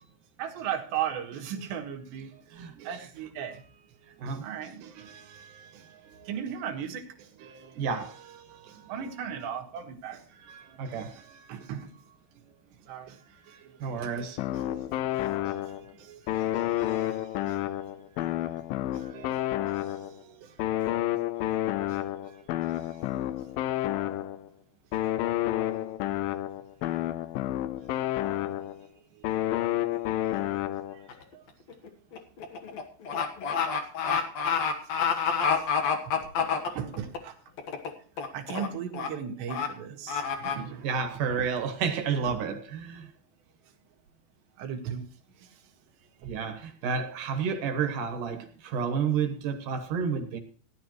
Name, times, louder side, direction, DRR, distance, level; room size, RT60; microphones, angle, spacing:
voice 1, 0.4-3.6 4.3-7.9 8.4-11.9 12.5-12.6 12.9-14.9 15.4-17.9 18.5-21.1 21.9-22.4 22.7-23.0 25.0-25.1 28.6-28.7 29.1-30.4 30.8-31.4 34.1-34.2 35.6-35.7 36.7-37.4 38.3-40.9 41.4-41.5 42.2-42.3 44.6-45.0 45.4-45.5 46.2-46.3, right 8 dB, 85° right, 3.8 m, -39 dB
voice 2, 2.5-3.1 4.2-4.4 7.8-8.1 10.8-11.1 13.8-14.4 40.8-43.1 46.3-50.4, right 6 dB, 60° right, 2.5 m, -30 dB
sound 1, 14.4-15.9 16.3-20.2 20.6-24.5 24.9-28.9 29.2-31.1, left 14 dB, 80° left, 2.2 m, -30 dB
sound 2, 31.1-31.3 31.7-37.2 37.6-37.9 38.2-38.7 38.9-39.1 39.5-39.7 40.1-40.6, left 6 dB, 60° left, 1.9 m, -28 dB
18.0 x 11.5 x 3.1 m
omnidirectional pair, 4.8 m